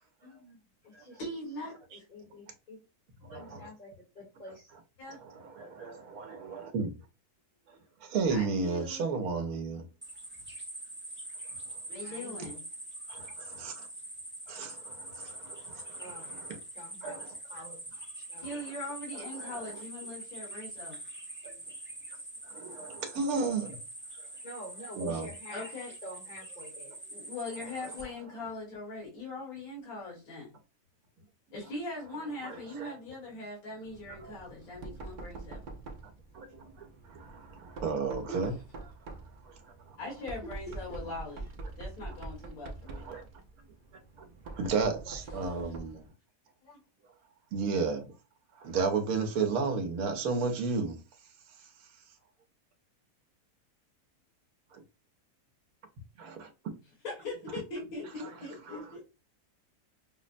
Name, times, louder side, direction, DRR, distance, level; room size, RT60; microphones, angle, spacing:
voice 1, 0.2-0.6 0.9-1.2 1.9-2.8 3.3-4.7 12.0-12.6 16.0-16.4 16.7-18.5 24.4-25.7 26.0-27.0 40.2-40.3 44.8-45.2 45.9-46.0 58.7-58.8, left 1 dB, 35° left, 1.0 m, -48 dB
voice 2, 1.2-1.7 5.0-5.2 8.3-9.1 11.9-12.6 18.4-21.0 25.5-25.9 27.1-30.5 31.5-35.6 38.3-38.4 40.0-41.4 41.8-43.1 46.6-46.8 57.0-58.8, left 2 dB, 65° left, 1.9 m, -41 dB
voice 3, 3.3-3.7 5.1-6.9 8.0-9.9 13.1-13.9 14.5-16.5 17.0-17.3 19.4-19.7 21.4-21.6 22.4-23.8 25.0-25.3 27.8-27.9 32.4-33.0 34.2-34.3 36.3-38.5 39.4-39.5 42.9-43.2 44.2-46.1 47.5-48.0 48.6-51.0 54.7-54.8 56.2-56.5, right 4 dB, 70° right, 1.2 m, -33 dB
sound 1, 10.0-28.0, right 1 dB, 15° right, 0.5 m, -44 dB
Knock, 33.8-46.1, right 3 dB, 90° right, 0.4 m, -45 dB
5.6 x 2.0 x 2.5 m
omnidirectional pair, 1.6 m